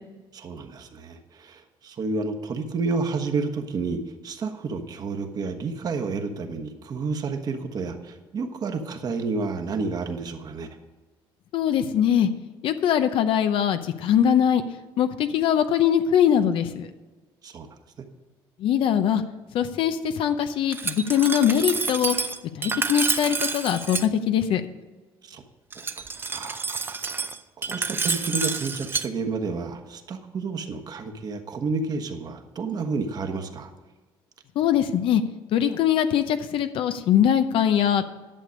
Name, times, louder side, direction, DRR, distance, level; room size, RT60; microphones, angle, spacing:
voice 1, 0.3-10.7 17.4-17.7 25.2-25.4 25.7-26.0 26.3-27.0 27.7-33.7, right 4 dB, 45° right, 6 dB, 1.2 m, -30 dB
voice 2, 11.5-12.3 12.6-14.6 15.0-16.9 18.6-19.2 19.5-22.3 22.5-24.6 34.6-35.2 35.5-38.0, left 9 dB, 65° left, 9 dB, 0.7 m, -22 dB
Glass, 20.7-24.1 25.7-29.1, right 4 dB, 25° right, 0.6 m, -28 dB
11.0 x 6.8 x 6.4 m, 1.2 s
cardioid pair, 120°, 10 cm